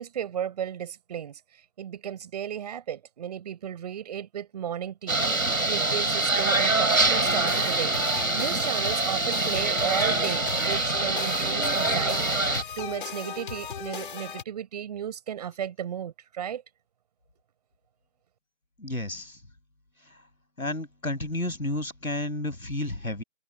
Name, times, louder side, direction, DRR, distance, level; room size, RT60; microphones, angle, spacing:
voice 1, 0.0-1.4 1.8-5.2 5.7-8.0 8.3-12.4 12.8-16.6, right 9 dB, 30° right, 6.8 m, -34 dB
sound 1, 5.1-12.6, right 2 dB, 75° right, 6.7 m, -25 dB
sound 2, 6.9-14.4, left 7 dB, 40° left, 4.4 m, -37 dB
voice 2, 18.8-19.4 20.6-23.2, left 1 dB, 85° left, 6.9 m, -31 dB
figure-of-eight pair, 155°, 41 cm